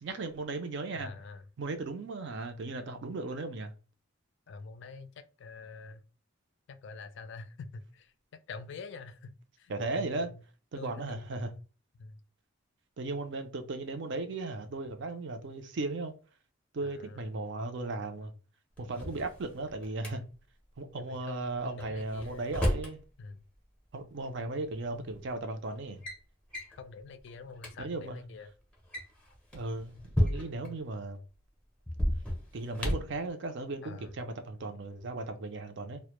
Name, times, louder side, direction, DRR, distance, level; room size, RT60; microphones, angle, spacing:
voice 1, 0.0-1.1 1.6-3.7 9.7-10.3 10.7-11.5 13.0-16.1 16.7-18.3 18.8-20.2 20.8-23.0 23.9-26.0 27.8-28.2 29.5-31.2 32.5-36.0, right 2 dB, 60° right, 0.4 m, -36 dB
voice 2, 1.0-1.4 4.5-6.0 6.7-8.1 8.5-10.4 10.8-11.4 11.9-12.2 16.8-17.3 21.1-22.5 23.2-23.4 26.7-28.5 33.8-34.1, left 4 dB, 60° left, 0.3 m, -46 dB
Drawer open or close, 18.8-20.1 21.8-23.0 24.3-24.4 25.2-25.4 25.7-26.2 26.5-26.8 27.3-27.4 27.6-27.7 28.7-30.7 31.9-33.2, equal, 5° left, 0.6 m, -32 dB
2.1 x 2.0 x 2.9 m
head